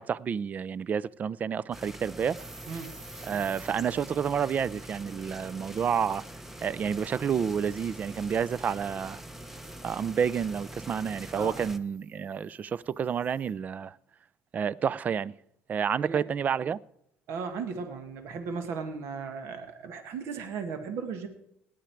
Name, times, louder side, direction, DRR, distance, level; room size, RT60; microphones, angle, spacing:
voice 1, 0.0-2.4 3.2-6.2 6.6-9.2 9.8-14.0 14.5-15.3 15.7-16.8, right 7 dB, 35° right, 0.4 m, -29 dB
sound 1, 1.7-11.8, right 1 dB, 5° right, 0.8 m, -44 dB
sound 2, 2.3-13.5, right 3 dB, 90° right, 5.2 m, -56 dB
voice 2, 2.7-3.0 11.4-11.6 16.0-16.2 17.3-21.3, right 5 dB, 65° right, 1.7 m, -36 dB
18.5 x 10.0 x 4.6 m
cardioid pair, 120°, 5 cm